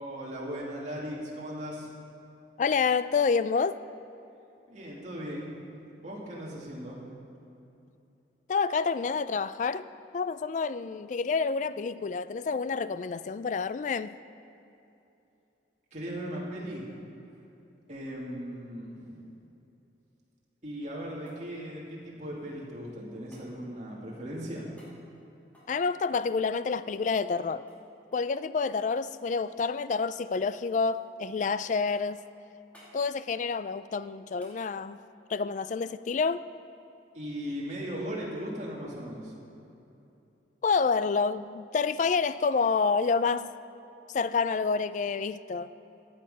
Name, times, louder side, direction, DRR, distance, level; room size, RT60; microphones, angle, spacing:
voice 1, 0.0-1.9 4.7-5.7 6.0-7.1 15.9-16.9 17.9-19.3 20.6-24.7 37.1-39.3, equal, 40° right, 2.5 m, -38 dB
voice 2, 2.6-3.8 8.5-9.9 10.1-14.2 25.7-27.7 28.1-32.2 32.9-35.0 35.3-36.4 40.6-43.5 44.1-45.7, left 5 dB, 45° left, 0.3 m, -28 dB
sound 1, 20.8-22.7 23.3-23.5 24.7-25.0 25.5-27.4 27.7-27.8 28.1-28.3 28.7-29.6 29.9-30.5 30.9-31.4 31.9-32.2 32.7-33.0 34.4-34.6 37.0-37.1, equal, 10° left, 2.7 m, -60 dB
14.5 x 8.7 x 5.6 m
head